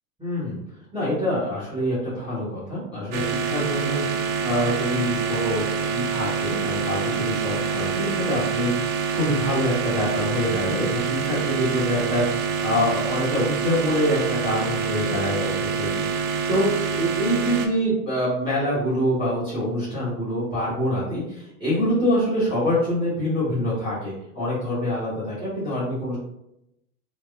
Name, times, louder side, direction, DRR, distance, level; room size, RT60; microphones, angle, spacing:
voice 1, 0.2-0.6 0.9-16.7 16.9-26.2, equal, 10° right, -11 dB, 1.4 m, -25 dB
sound 1, 3.1-17.7, right 6 dB, 50° right, 0.5 m, -26 dB
3.2 x 2.1 x 2.4 m, 0.84 s
hypercardioid pair, 90°, 45 cm